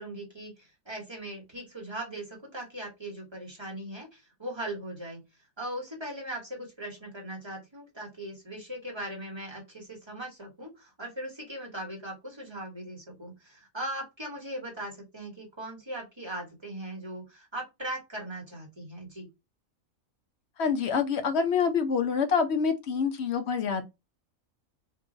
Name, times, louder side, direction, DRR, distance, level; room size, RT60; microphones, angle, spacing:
voice 1, 0.0-5.2 5.6-19.3, right 1 dB, 20° right, 1.2 m, -39 dB
voice 2, 20.6-23.8, left 6 dB, 60° left, 0.8 m, -26 dB
3.8 x 2.4 x 3.8 m
omnidirectional pair, 1.4 m